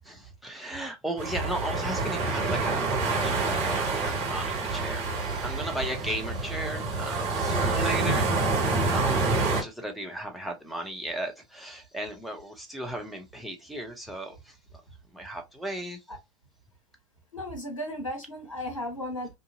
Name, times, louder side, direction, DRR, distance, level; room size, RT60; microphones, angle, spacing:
voice 1, 0.0-8.6 8.9-14.5 15.1-16.0, right 1 dB, ahead, 0.8 m, -36 dB
sound 1, 1.2-9.6, right 3 dB, 40° right, 1.6 m, -27 dB
voice 2, 17.3-19.3, left 1 dB, 85° left, 1.1 m, -35 dB
2.7 x 2.6 x 2.6 m
figure-of-eight pair, 85°, 17 cm